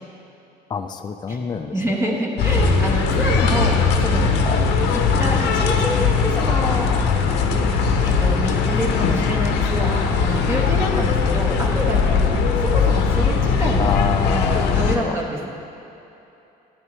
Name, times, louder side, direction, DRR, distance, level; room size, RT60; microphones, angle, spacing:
voice 1, 0.7-1.7 4.4-4.6 13.8-15.2, left 6 dB, 25° left, 6 dB, 0.4 m, -26 dB
voice 2, 1.7-4.3 4.9-6.9 7.5-7.7 8.0-13.9 14.7-15.5, equal, 15° right, -3 dB, 1.3 m, -27 dB
sound 1, 2.4-15.0, left 5 dB, 90° left, 0.8 m, -19 dB
10.5 x 9.5 x 3.2 m, 2.9 s
cardioid pair, 110°, 17 cm